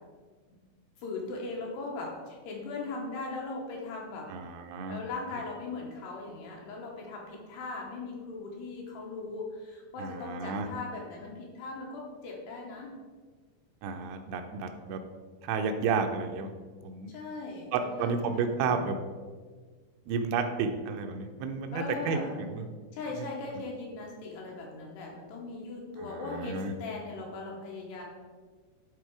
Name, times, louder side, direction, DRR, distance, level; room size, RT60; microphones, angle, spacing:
voice 1, 1.0-4.3 4.9-13.0 17.1-18.9 21.7-22.4 22.9-28.0, left 3 dB, 75° left, -1 dB, 2.8 m, -39 dB
voice 2, 4.3-5.0 10.0-10.7 13.8-15.0 15.4-16.5 16.8-17.1 17.7-19.0 20.1-22.6 26.0-26.7, right 5 dB, 80° right, 5 dB, 3.0 m, -31 dB
11.5 x 4.2 x 4.7 m, 1.5 s
omnidirectional pair, 5.5 m